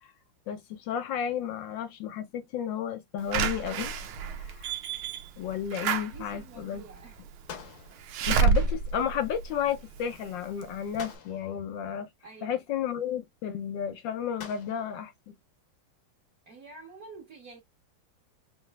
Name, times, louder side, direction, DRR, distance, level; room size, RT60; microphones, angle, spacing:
voice 1, 0.5-3.9 4.4-4.5 5.4-6.8 8.3-12.1 12.4-15.3, left 9 dB, 75° left, 1.2 m, -32 dB
sound 1, 3.3-4.2 7.5-8.3 11.0-11.7 14.4-15.1, left 7 dB, 60° left, 1.2 m, -46 dB
Slam / Alarm, 3.3-10.1 10.6-10.7 10.9-11.0, right 5 dB, 85° right, 1.6 m, -29 dB
voice 2, 5.8-7.3 12.2-12.6 16.5-17.6, right 4 dB, 55° right, 1.3 m, -48 dB
5.4 x 3.0 x 2.2 m
omnidirectional pair, 2.3 m